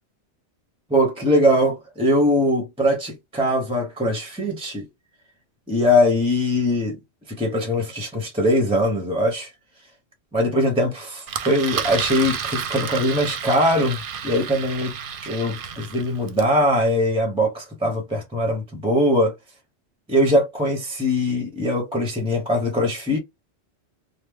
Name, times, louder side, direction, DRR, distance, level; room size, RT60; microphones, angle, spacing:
voice 1, 0.9-4.9 5.7-7.0 7.3-9.5 10.3-14.9 15.2-19.3 20.1-23.2, left 1 dB, 5° right, 0.6 m, -21 dB
Engine, 11.3-16.5, right 7 dB, 60° right, 0.7 m, -31 dB
3.2 x 2.1 x 3.4 m
omnidirectional pair, 1.2 m